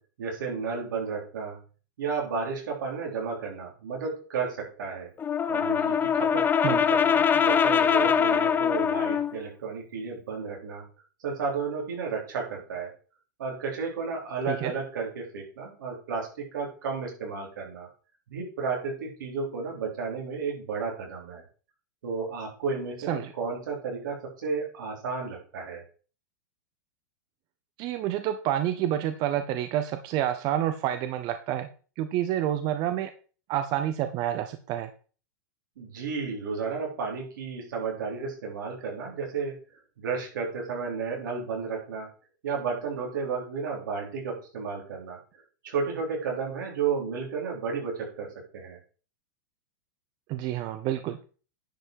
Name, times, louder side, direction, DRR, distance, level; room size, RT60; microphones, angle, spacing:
voice 1, 0.2-1.6 2.0-5.1 5.5-10.8 11.2-12.9 13.4-17.9 18.3-21.4 22.0-25.8 35.8-39.5 40.0-42.1 42.4-45.2 45.6-48.3 48.5-48.8, right 5 dB, 80° right, 0 dB, 4.0 m, -32 dB
Brass instrument, 5.2-9.4, left 7 dB, 20° left, 0.6 m, -23 dB
voice 2, 27.8-31.7 32.0-33.1 33.5-34.9 50.3-51.2, right 11 dB, 45° right, 9 dB, 0.7 m, -28 dB
10.0 x 5.5 x 4.7 m, 0.38 s
hypercardioid pair, 125°, 10 cm